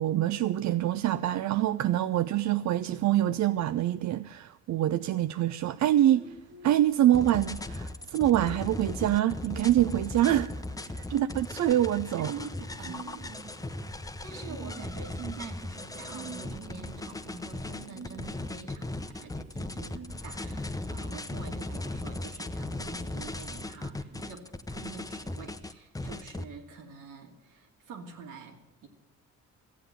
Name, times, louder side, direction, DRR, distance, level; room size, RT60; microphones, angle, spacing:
voice 1, 0.0-6.4 6.6-10.5 10.8-12.3, right 12 dB, 65° right, 0.5 m, -25 dB
sound 1, 5.8-24.3, right 4 dB, 40° right, 1.7 m, -51 dB
sound 2, 7.1-26.4, left 2 dB, 10° left, 0.8 m, -38 dB
voice 2, 12.2-13.2 14.2-28.9, right 5 dB, 85° right, 2.7 m, -45 dB
15.0 x 8.0 x 9.1 m
cardioid pair, 90°, 30 cm